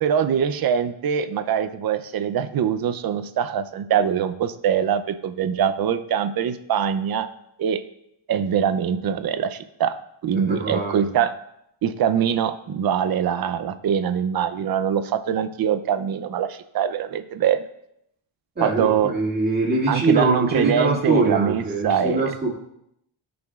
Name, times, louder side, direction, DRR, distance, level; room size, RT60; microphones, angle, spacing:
voice 1, 0.0-7.3 7.6-7.8 8.3-11.3 11.8-17.6 18.6-19.1 19.9-22.3, right 8 dB, 45° right, 10 dB, 0.6 m, -23 dB
voice 2, 10.3-11.0 18.6-22.5, right 3 dB, 20° right, -4 dB, 2.2 m, -23 dB
15.5 x 5.2 x 2.4 m, 0.78 s
wide cardioid pair, 140°, 50 cm